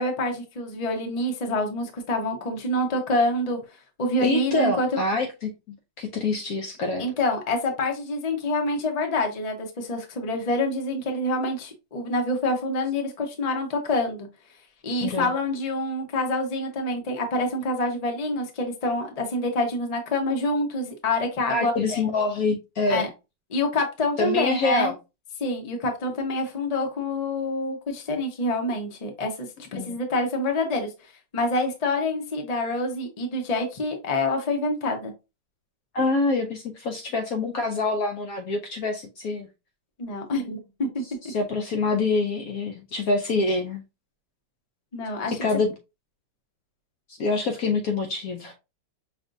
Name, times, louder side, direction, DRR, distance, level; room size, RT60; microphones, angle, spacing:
voice 1, 0.0-3.6 4.0-4.9 7.0-14.3 14.8-22.0 22.9-23.1 23.5-24.9 25.4-30.9 31.3-35.1 40.0-41.0 44.9-45.4, left 2 dB, 35° left, 0.6 m, -26 dB
voice 2, 4.2-7.1 15.0-15.3 21.5-23.1 24.2-24.9 29.7-30.0 35.9-39.5 41.3-43.8 45.3-45.7 47.1-48.5, left 3 dB, 65° left, 0.9 m, -26 dB
5.7 x 2.5 x 2.6 m
omnidirectional pair, 2.0 m